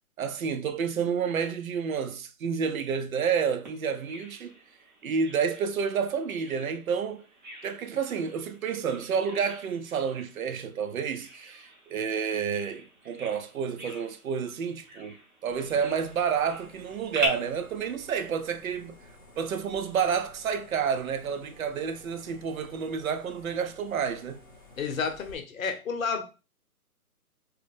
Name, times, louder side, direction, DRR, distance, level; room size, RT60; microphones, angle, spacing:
voice 1, 0.2-4.6 5.0-7.3 7.6-19.0 19.4-24.4, right 6 dB, 65° right, 0.5 m, -30 dB
Bird vocalization bird call bird song, 3.7-17.3, right 1 dB, 30° right, 0.8 m, -42 dB
sound 1, 15.5-25.4, left 2 dB, 25° left, 0.9 m, -53 dB
voice 2, 24.8-26.2, left 5 dB, 65° left, 0.8 m, -30 dB
3.0 x 2.1 x 3.4 m
hypercardioid pair, 165°, 45 cm